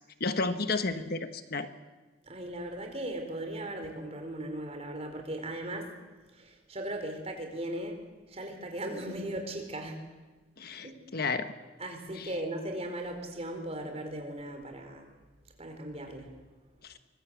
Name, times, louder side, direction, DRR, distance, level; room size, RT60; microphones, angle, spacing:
voice 1, 0.2-1.7 10.6-11.5 12.2-12.3 16.8-16.9, left 3 dB, 50° left, 9 dB, 1.3 m, -32 dB
voice 2, 2.2-6.0 6.3-8.0 8.3-10.0 10.8-11.1 11.8-15.1 15.6-16.3, right 1 dB, 35° right, 4 dB, 4.5 m, -38 dB
24.0 x 22.0 x 8.3 m, 1.2 s
head